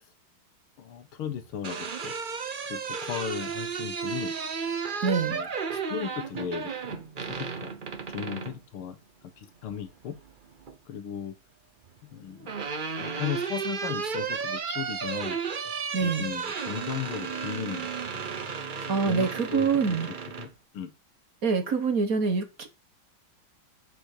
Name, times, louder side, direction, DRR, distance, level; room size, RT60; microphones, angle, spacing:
voice 1, 0.8-2.1 2.7-4.3 5.3-7.0 7.6-7.7 8.1-9.0 9.4-10.2 10.9-11.4 12.1-12.6 13.0-15.4 16.0-18.2 18.9-20.9, left 8 dB, 85° left, 2.0 m, -36 dB
sound 1, 1.4-8.6 10.1-10.7 12.0-20.5, right 6 dB, 90° right, 0.4 m, -33 dB
voice 2, 5.0-5.4 15.9-16.3 18.9-20.1 21.4-22.7, right 5 dB, 45° right, 1.6 m, -25 dB
7.4 x 4.7 x 6.6 m
omnidirectional pair, 2.3 m